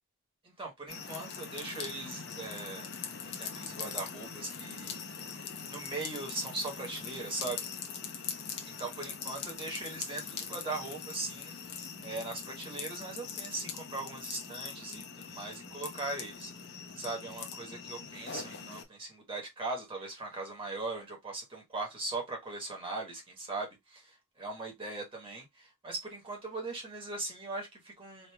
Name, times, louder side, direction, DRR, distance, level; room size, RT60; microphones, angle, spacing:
voice 1, 0.4-2.9 3.4-5.0 5.7-7.7 8.6-16.5 16.9-28.3, right 2 dB, 25° right, 1.2 m, -40 dB
sound 1, 0.9-18.8, left 6 dB, 50° left, 0.7 m, -42 dB
3.2 x 2.6 x 3.3 m
head